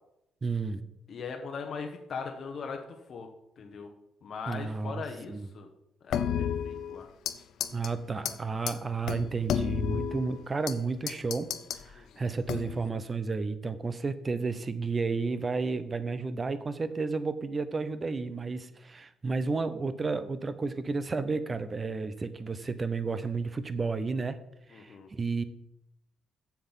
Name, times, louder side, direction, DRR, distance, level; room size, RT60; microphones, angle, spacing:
voice 1, 0.4-0.8 4.5-5.0 5.3-5.5 7.7-24.4 24.7-25.4, right 4 dB, 30° right, 12 dB, 0.8 m, -32 dB
voice 2, 1.1-3.3 3.6-3.9 4.2-5.7 6.0-7.1 11.9-12.2 24.7-25.1, left 5 dB, 55° left, 3 dB, 1.1 m, -40 dB
sound 1, 6.1-7.4 7.6-7.9 8.3-8.4 8.7-8.8 9.1-10.8 11.1-11.8 12.5-12.9, left 9 dB, 80° left, 0.6 m, -32 dB
7.2 x 7.2 x 5.7 m, 0.81 s
cardioid pair, 90°, 0 cm